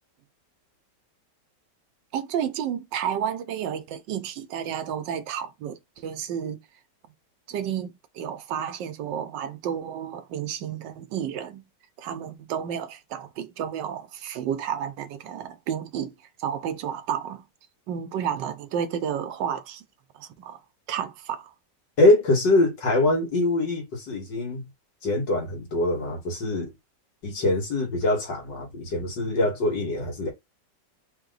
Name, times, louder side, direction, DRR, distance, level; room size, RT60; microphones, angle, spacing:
voice 1, 2.1-6.6 7.5-11.6 12.0-16.1 16.4-17.4 17.9-19.8 20.1-20.6 20.9-21.5, right 9 dB, 90° right, 1.4 m, -31 dB
voice 2, 22.0-24.7 25.0-26.7 27.2-30.3, left 2 dB, 80° left, 2.5 m, -23 dB
4.4 x 2.9 x 3.9 m
omnidirectional pair, 1.9 m